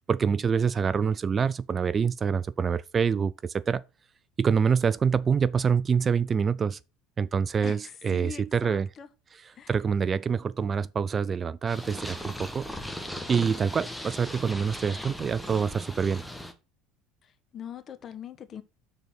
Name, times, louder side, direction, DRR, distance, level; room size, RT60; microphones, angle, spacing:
voice 1, 0.1-3.8 4.4-6.8 7.2-8.9 9.3-12.7 13.3-16.2, right 6 dB, 30° right, 0.3 m, -26 dB
voice 2, 8.1-9.1 9.6-9.7 17.5-18.6, left 8 dB, 40° left, 1.2 m, -41 dB
Purr, 11.7-16.5, equal, ahead, 1.3 m, -38 dB
6.5 x 4.1 x 6.3 m
hypercardioid pair, 70°, 0 cm